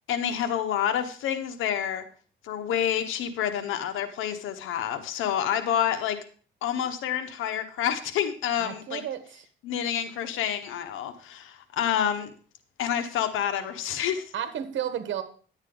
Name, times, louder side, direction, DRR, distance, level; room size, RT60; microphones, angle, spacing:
voice 1, 0.1-2.0 2.4-6.2 6.6-9.0 9.6-12.3 12.8-14.2, left 9 dB, 90° left, 9 dB, 1.2 m, -28 dB
voice 2, 8.6-9.4 14.3-15.2, right 9 dB, 70° right, 10 dB, 1.5 m, -32 dB
11.0 x 8.9 x 3.9 m, 0.42 s
cardioid pair, 90°, 20 cm